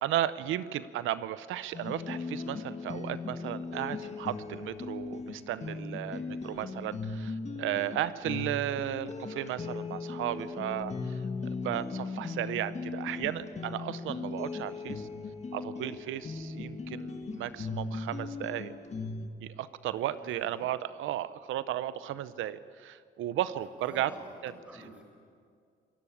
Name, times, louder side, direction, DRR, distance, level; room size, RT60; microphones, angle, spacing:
voice 1, 0.0-15.1 15.5-18.7 19.4-24.1 24.4-24.5, right 12 dB, 85° right, 15 dB, 0.8 m, -35 dB
sound 1, 1.7-19.3, left 4 dB, 35° left, 2.0 m, -38 dB
voice 2, 6.0-6.3 20.1-20.7 23.8-25.0, equal, 5° right, -1 dB, 6.9 m, -49 dB
27.5 x 16.5 x 8.6 m, 2.3 s
cardioid pair, 90°, 20 cm